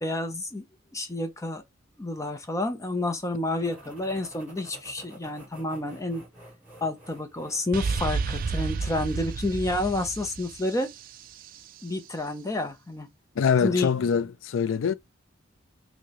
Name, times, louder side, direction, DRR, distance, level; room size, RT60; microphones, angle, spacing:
voice 1, 0.0-0.6 0.9-1.6 2.0-6.2 6.8-10.9 11.8-13.1 13.6-13.9, left 2 dB, 15° left, 0.5 m, -29 dB
sound 1, 3.6-9.4, right 1 dB, 5° right, 1.8 m, -51 dB
sound 2, 7.7-11.5, right 4 dB, 45° right, 0.3 m, -31 dB
voice 2, 13.4-14.9, left 6 dB, 80° left, 0.4 m, -24 dB
4.7 x 2.1 x 2.9 m
head